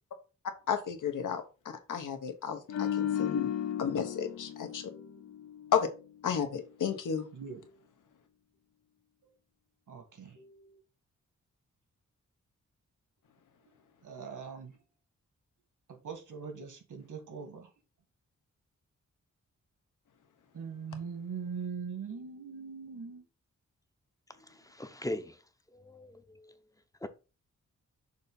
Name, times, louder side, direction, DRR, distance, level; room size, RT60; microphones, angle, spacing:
voice 1, 0.7-3.5 3.8-4.9 5.7-5.9 6.2-7.3, left 7 dB, 90° left, 1.1 m, -32 dB
sound 1, 2.7-6.0 6.3-6.5, left 10 dB, 60° left, 0.5 m, -35 dB
voice 2, 7.3-7.8 9.2-9.3 9.9-10.8 14.0-14.8 15.9-17.7 20.5-23.3, right 6 dB, 75° right, 1.7 m, -42 dB
voice 3, 24.4-25.4 25.7-26.5 27.0-27.1, left 1 dB, 10° left, 0.6 m, -40 dB
6.5 x 2.8 x 5.4 m
wide cardioid pair, 130°, 30 cm